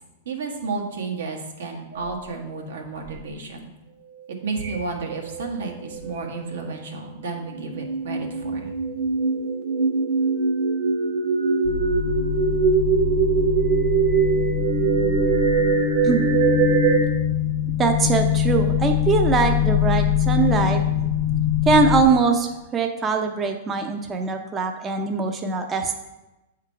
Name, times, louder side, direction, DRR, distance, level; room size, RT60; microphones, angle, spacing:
voice 1, 0.2-3.7 4.4-8.7, right 4 dB, 85° right, 1 dB, 1.2 m, -32 dB
sound 1, 1.9-2.5 3.1-3.2 4.6-5.0 5.3-6.2 7.5-17.1, right 5 dB, 50° right, 1.0 m, -22 dB
sound 2, 11.7-22.0, left 10 dB, 70° left, 0.5 m, -23 dB
voice 2, 17.8-20.8 21.7-26.0, right 4 dB, 20° right, 4 dB, 0.5 m, -22 dB
7.3 x 3.8 x 4.5 m, 1.0 s
hypercardioid pair, 135°, 0 cm